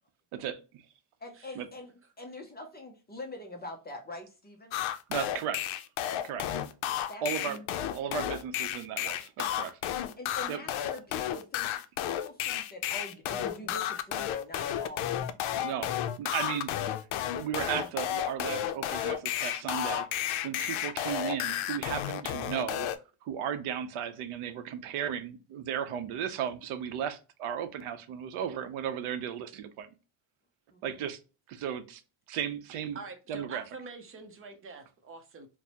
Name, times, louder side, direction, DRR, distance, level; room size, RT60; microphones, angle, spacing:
voice 1, 0.3-0.8 1.6-1.7 5.1-5.7 6.2-6.5 7.2-7.6 7.9-9.3 9.6-9.7 10.5-10.6 15.6-22.9 23.2-29.9 30.8-31.2 31.5-32.0 32.3-33.0 33.3-33.6, right 8 dB, 90° right, 0.7 m, -35 dB
voice 2, 1.2-4.8 7.1-7.7 8.0-8.1 10.2-11.8 12.0-15.1 30.7-31.1, left 2 dB, 20° left, 0.4 m, -44 dB
sound 1, 4.7-23.0, left 11 dB, 75° left, 0.5 m, -32 dB
voice 3, 32.9-35.5, right 4 dB, 25° right, 0.6 m, -45 dB
4.4 x 2.1 x 2.8 m
cardioid pair, 165°, 49 cm